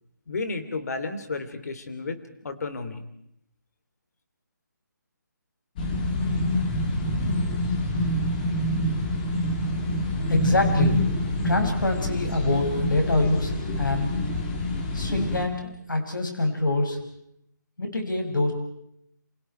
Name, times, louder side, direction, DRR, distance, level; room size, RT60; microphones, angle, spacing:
voice 1, 0.3-3.0, left 3 dB, 55° left, 9 dB, 3.4 m, -32 dB
sound 1, 5.8-15.4, left 1 dB, 25° left, 3.5 m, -26 dB
voice 2, 10.3-11.0 11.4-14.1 14.9-17.0 17.8-18.5, left 2 dB, 90° left, 3 dB, 6.5 m, -25 dB
29.0 x 27.5 x 4.7 m, 0.76 s
figure-of-eight pair, 160°, 10 cm